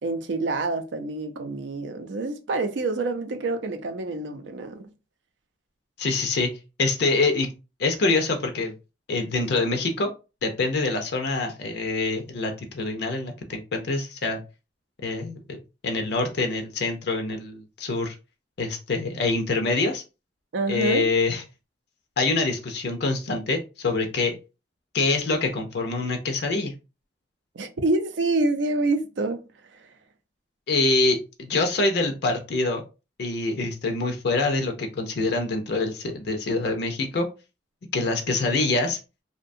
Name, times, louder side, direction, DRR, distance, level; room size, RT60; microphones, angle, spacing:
voice 1, 0.0-4.9 20.5-21.1 27.5-29.4 29.7-29.9, right 2 dB, 80° right, 0.5 m, -27 dB
voice 2, 6.0-6.5 6.8-7.5 7.8-8.7 9.1-10.1 10.4-14.4 15.0-15.6 15.8-18.1 18.6-20.0 20.7-21.4 22.2-24.4 24.9-26.7 30.7-32.8 33.2-37.3 37.9-39.0, left 3 dB, 60° left, 0.5 m, -25 dB
2.6 x 2.1 x 2.5 m
head